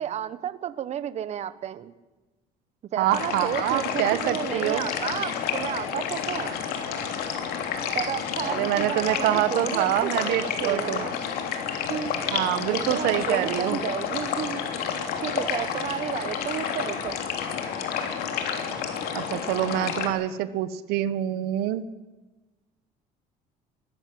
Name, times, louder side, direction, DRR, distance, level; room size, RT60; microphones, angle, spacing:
voice 1, 0.0-1.9 2.9-6.5 7.9-11.1 11.9-12.1 12.7-14.6 15.2-17.2, right 9 dB, 45° right, 14 dB, 1.1 m, -32 dB
voice 2, 3.0-4.9 8.4-11.0 12.3-13.8 19.1-21.8, right 13 dB, 85° right, 13 dB, 1.3 m, -26 dB
sound 1, 3.1-20.1, left 7 dB, 75° left, 3.1 m, -30 dB
20.0 x 14.5 x 9.6 m, 1.2 s
cardioid pair, 145°, 16 cm